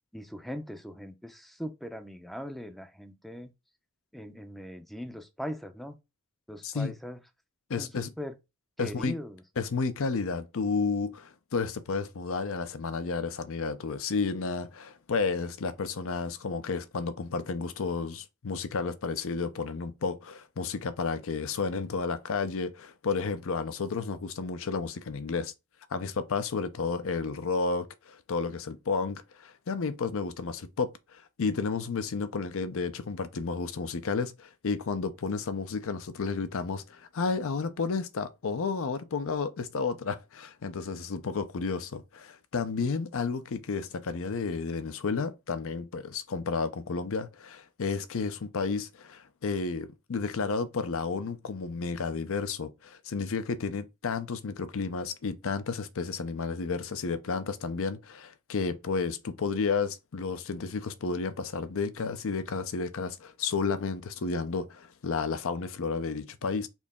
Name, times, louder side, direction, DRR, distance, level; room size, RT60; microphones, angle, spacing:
voice 1, 0.1-3.5 4.1-6.0 6.5-7.2 7.8-8.4 8.8-9.4, equal, ahead, 0.5 m, -40 dB
voice 2, 7.7-8.1 8.8-9.2 9.6-25.5 25.9-66.7, left 4 dB, 65° left, 0.6 m, -32 dB
4.3 x 2.9 x 3.5 m
head